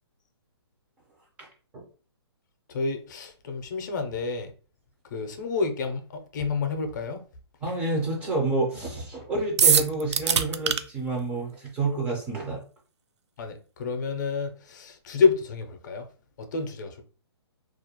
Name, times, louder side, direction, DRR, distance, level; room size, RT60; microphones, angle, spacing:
voice 1, 2.7-4.5 5.1-7.2 13.4-16.0 16.5-17.0, left 5 dB, 45° left, 0.5 m, -28 dB
voice 2, 7.6-12.6, right 2 dB, 10° right, 0.3 m, -29 dB
sound 1, 9.6-10.8, right 7 dB, 85° right, 0.4 m, -21 dB
2.4 x 2.1 x 2.8 m
hypercardioid pair, 160°, 14 cm